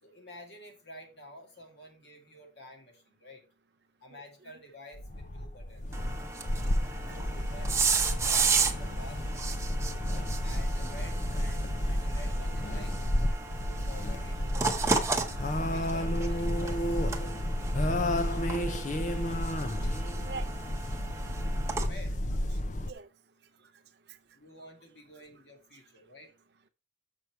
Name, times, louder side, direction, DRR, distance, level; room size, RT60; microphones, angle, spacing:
voice 1, 0.0-3.4 4.0-5.9 7.0-10.1 10.4-12.9 13.2-15.0 15.6-17.0 21.8-22.2 24.3-26.3, left 1 dB, 60° left, 2.5 m, -50 dB
voice 2, 4.1-4.5 6.6-7.3 10.8-10.9 17.8-19.8 20.2-20.5 22.8-23.1, right 4 dB, 60° right, 0.6 m, -47 dB
sound 1, 4.9-22.9, left 1 dB, 40° left, 0.6 m, -31 dB
sound 2, 5.9-21.9, right 4 dB, 15° right, 0.9 m, -34 dB
6.8 x 6.2 x 4.5 m
head